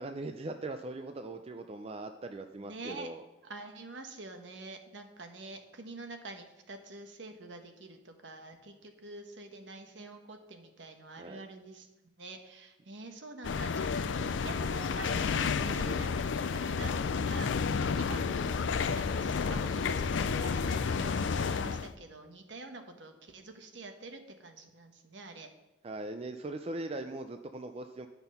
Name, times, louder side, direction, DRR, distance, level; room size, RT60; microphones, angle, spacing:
voice 1, 0.0-3.2 11.2-11.4 25.8-28.1, right 2 dB, 30° right, 7 dB, 0.4 m, -40 dB
voice 2, 2.6-3.1 3.4-11.9 12.2-25.5, right 2 dB, 70° right, 5 dB, 1.1 m, -46 dB
sound 1, 13.4-21.9, left 5 dB, 75° left, 0.4 m, -31 dB
10.5 x 5.9 x 5.5 m, 1.0 s
head